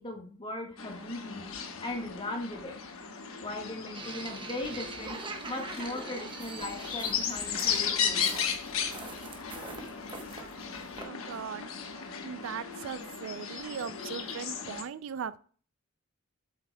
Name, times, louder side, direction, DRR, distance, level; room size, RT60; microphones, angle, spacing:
voice 1, 0.0-1.4 1.8-2.8 3.4-5.2 5.5-8.3, left 1 dB, 25° left, 2 dB, 1.5 m, -38 dB
sound 1, 0.8-14.8, left 7 dB, 75° left, 1.2 m, -36 dB
sound 2, 3.9-11.0, right 3 dB, 25° right, 0.9 m, -43 dB
voice 2, 11.0-11.9 12.2-15.4, right 7 dB, 65° right, 15 dB, 0.3 m, -39 dB
8.1 x 7.4 x 2.2 m, 0.43 s
head